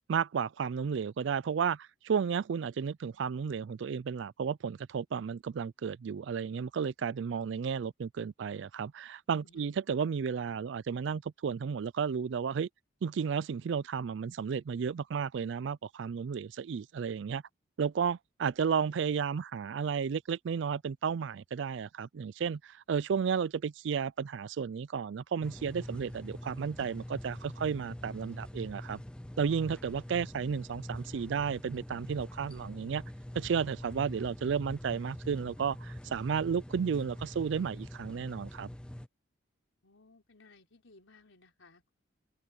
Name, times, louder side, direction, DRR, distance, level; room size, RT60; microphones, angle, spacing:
voice 1, 0.1-12.7 13.0-17.4 17.8-29.0 29.4-33.0 33.3-38.7, right 6 dB, 70° right, 0.4 m, -33 dB
sound 1, 25.4-39.1, equal, 5° left, 0.3 m, -44 dB
voice 2, 39.8-41.9, left 3 dB, 85° left, 4.5 m, -60 dB
open air
head